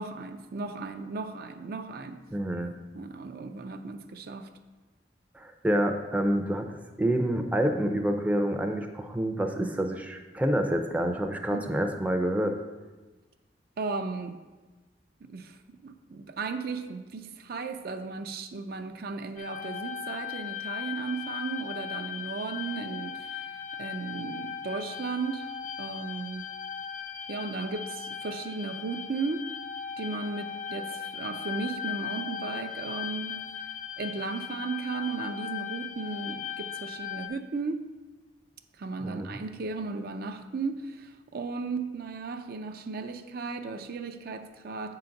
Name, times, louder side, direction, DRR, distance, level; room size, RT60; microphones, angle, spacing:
voice 1, 0.0-2.2 2.9-4.5 11.5-11.7 13.8-14.4 15.2-23.5 23.8-25.5 25.8-26.5 27.3-29.5 30.0-33.5 34.0-37.9 38.8-45.0, right 4 dB, 60° right, 7 dB, 0.5 m, -35 dB
voice 2, 2.3-2.7 5.3-6.7 7.0-12.6 39.0-39.3, right 1 dB, 10° right, 4 dB, 0.5 m, -27 dB
sound 1, 19.4-37.3, left 8 dB, 45° left, 0.5 m, -38 dB
7.7 x 3.9 x 5.8 m, 1.2 s
head